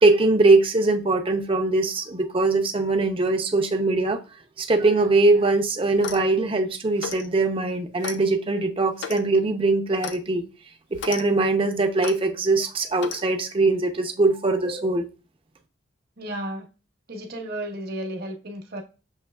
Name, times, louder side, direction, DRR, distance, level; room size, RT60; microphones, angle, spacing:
voice 1, 0.0-4.2 4.6-10.4 10.9-15.1, right 2 dB, 30° right, 0.5 m, -21 dB
Clock, 5.9-6.3 7.0-7.3 8.0-8.2 9.0-9.2 10.0-10.2 10.9-11.2 12.0-12.2 13.0-13.2, left 6 dB, 60° left, 0.4 m, -34 dB
voice 2, 16.2-16.7 17.1-18.8, right 1 dB, 50° right, 0.9 m, -33 dB
6.4 x 2.9 x 2.3 m
head